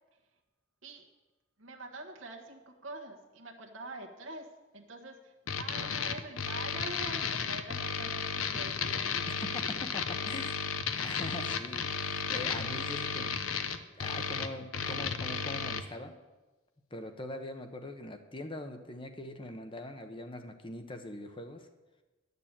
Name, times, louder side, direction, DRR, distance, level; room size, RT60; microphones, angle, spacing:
voice 1, 1.6-9.1, right 2 dB, 70° right, 1 dB, 1.4 m, -45 dB
sound 1, 5.5-15.8, left 6 dB, 90° left, 0.9 m, -34 dB
voice 2, 9.3-10.6 10.9-13.3 14.0-16.2 16.9-21.7, left 1 dB, 25° left, 7 dB, 1.0 m, -42 dB
11.5 x 6.8 x 8.9 m, 1.1 s
head